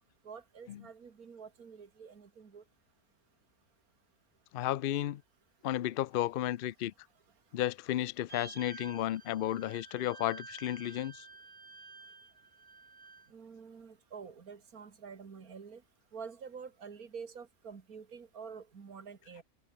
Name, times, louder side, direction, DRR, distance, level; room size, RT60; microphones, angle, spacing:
voice 1, 0.2-2.6 13.3-15.8 16.1-19.4, right 6 dB, 75° right, 2.5 m, -48 dB
voice 2, 4.5-5.2 5.6-6.9 7.5-11.3, left 13 dB, 85° left, 0.4 m, -33 dB
sound 1, 8.3-13.3, right 4 dB, 35° right, 1.8 m, -51 dB
omnidirectional pair, 1.6 m